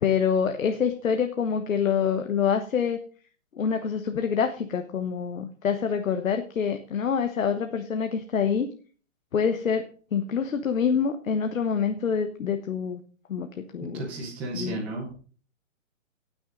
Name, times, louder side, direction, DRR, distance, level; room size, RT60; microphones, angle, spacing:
voice 1, 0.0-3.0 3.6-8.7 9.3-13.0 13.3-13.5 13.7-14.0 14.5-14.8, left 7 dB, 75° left, 7 dB, 1.3 m, -26 dB
voice 2, 13.8-15.1, right 2 dB, 5° right, -6 dB, 0.8 m, -34 dB
18.0 x 6.4 x 3.9 m, 0.40 s
hypercardioid pair, 175°, 40 cm